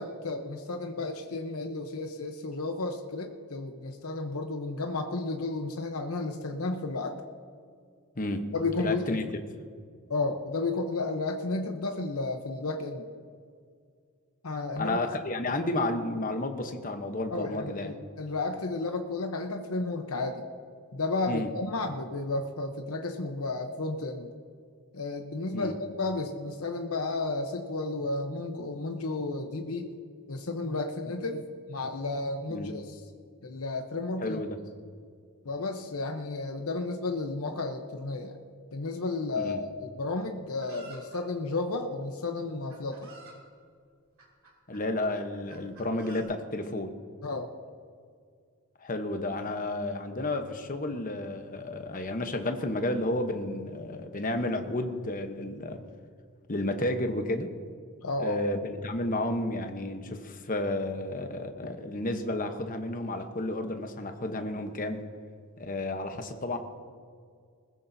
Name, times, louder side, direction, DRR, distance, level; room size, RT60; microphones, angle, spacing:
voice 1, 0.0-7.1 8.5-9.2 10.1-13.1 14.4-15.0 17.3-20.4 20.9-24.3 24.9-29.9 30.3-33.0 33.4-34.4 35.4-38.4 38.7-43.1 47.2-47.5 58.0-58.4, left 3 dB, 80° left, 5 dB, 0.9 m, -32 dB
voice 2, 8.2-8.5 8.8-9.2 14.8-17.9 21.3-21.5 25.5-25.8 32.5-32.7 34.2-34.6 39.4-39.6 44.7-46.9 48.8-55.8 56.5-57.5 58.2-65.0 65.6-66.6, left 1 dB, 40° left, 6 dB, 1.0 m, -31 dB
Chicken rooster, 40.6-41.2 42.2-42.3 42.7-43.4 44.2-44.8 45.5-46.2, right 3 dB, 75° right, 2.9 m, -51 dB
20.5 x 15.0 x 2.7 m, 2.1 s
head